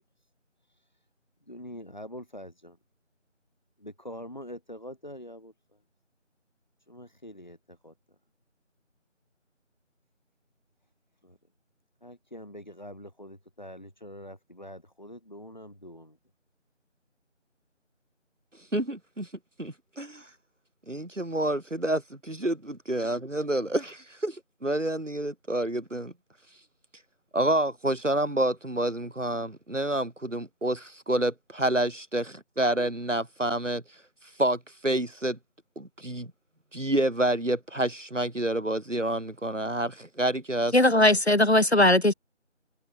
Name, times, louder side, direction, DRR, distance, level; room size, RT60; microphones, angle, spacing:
voice 1, 1.4-2.8 3.8-5.8 6.9-8.2 11.2-11.4 12.0-16.2, equal, 35° left, 7.5 m, -44 dB
voice 2, 18.7-19.3 19.6-20.3 20.9-26.1 27.3-32.2 32.6-33.8 34.4-35.4 35.8-36.3 36.7-40.8, right 1 dB, 75° right, 3.1 m, -28 dB
voice 3, 40.7-42.1, left 1 dB, 60° left, 1.4 m, -19 dB
figure-of-eight pair, 175°, 38 cm